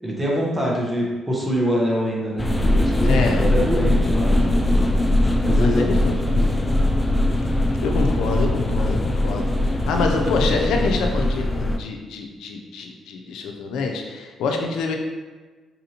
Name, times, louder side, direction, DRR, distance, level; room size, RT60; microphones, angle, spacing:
voice 1, 0.0-4.6 5.4-6.4, equal, 10° right, -4 dB, 0.8 m, -25 dB
sound 1, 2.4-11.8, left 1 dB, 10° left, 0.4 m, -20 dB
voice 2, 3.0-3.5 5.6-6.2 7.5-15.0, left 4 dB, 85° left, 3 dB, 0.5 m, -26 dB
4.1 x 2.6 x 2.8 m, 1.3 s
cardioid pair, 90°, 0 cm